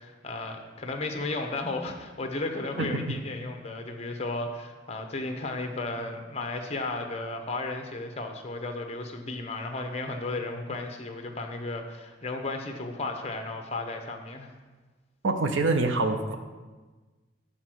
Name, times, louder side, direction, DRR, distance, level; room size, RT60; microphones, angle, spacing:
voice 1, 0.0-14.5, left 2 dB, 30° left, 4 dB, 0.8 m, -34 dB
voice 2, 15.2-16.4, right 3 dB, 75° right, 6 dB, 0.6 m, -25 dB
7.9 x 4.1 x 6.1 m, 1.3 s
head